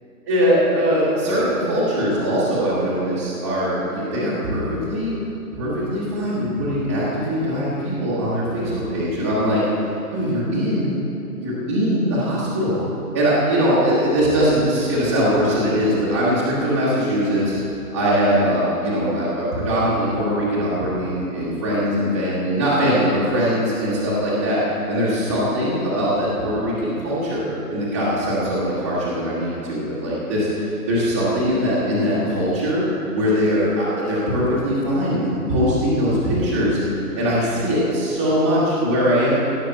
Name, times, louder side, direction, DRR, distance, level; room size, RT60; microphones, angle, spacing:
voice 1, 0.3-5.1 5.5-10.9 11.4-12.8 13.1-17.6 17.9-32.8 33.1-36.8 37.2-39.3, equal, 10° right, -12 dB, 1.1 m, -21 dB
16.5 x 5.8 x 7.5 m, 3.0 s
hypercardioid pair, 180°, 45 cm